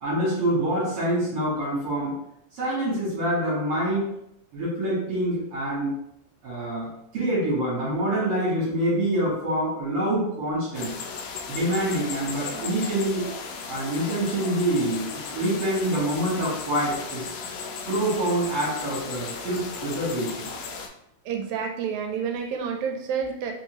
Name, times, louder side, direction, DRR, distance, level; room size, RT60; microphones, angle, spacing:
voice 1, 0.0-2.2 2.5-4.1 4.5-5.9 6.4-10.9 11.5-13.3 13.7-17.3 17.9-20.5, right 1 dB, 55° right, -7 dB, 2.1 m, -26 dB
sound 1, 10.7-20.9, left 5 dB, 80° left, 1.9 m, -36 dB
voice 2, 21.3-23.5, right 6 dB, 90° right, 3 dB, 2.0 m, -29 dB
4.7 x 2.7 x 2.9 m, 0.76 s
omnidirectional pair, 3.3 m